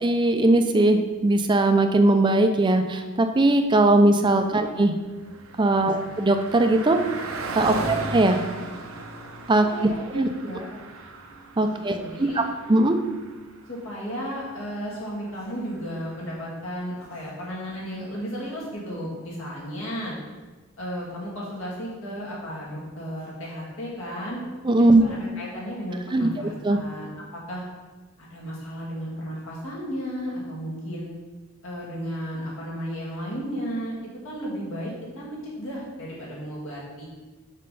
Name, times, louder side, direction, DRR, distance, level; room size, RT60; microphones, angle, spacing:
voice 1, 0.0-4.9 5.6-7.0 7.5-8.4 9.5-9.7 10.1-10.3 11.6-12.3 12.7-13.0 24.6-25.0 26.1-26.8, right 2 dB, 20° right, 6 dB, 0.5 m, -20 dB
Car passing by, 4.7-16.3, right 2 dB, 80° right, 0.8 m, -38 dB
voice 2, 5.7-6.1 7.6-8.0 9.5-10.7 11.6-12.4 13.7-20.2 20.8-24.4 25.0-27.6 28.2-31.1 31.6-33.9 34.2-37.0, equal, 70° left, -6 dB, 2.4 m, -34 dB
5.5 x 5.1 x 5.4 m, 1.3 s
head